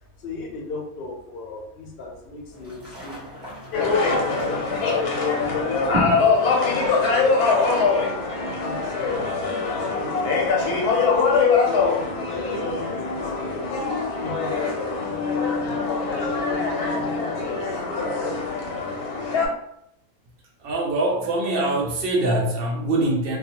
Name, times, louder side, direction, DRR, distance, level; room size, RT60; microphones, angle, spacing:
voice 1, 0.2-3.2 3.7-6.3 6.7-13.9 14.2-15.6 15.9-18.5, left 2 dB, 55° left, -1 dB, 0.7 m, -37 dB
sound 1, 2.5-7.7, left 1 dB, 20° right, 1.0 m, -35 dB
sound 2, 3.7-19.5, left 4 dB, 85° left, 1.2 m, -23 dB
voice 2, 20.6-23.4, right 2 dB, 70° right, -1 dB, 0.5 m, -23 dB
2.4 x 2.3 x 2.8 m, 0.76 s
omnidirectional pair, 1.6 m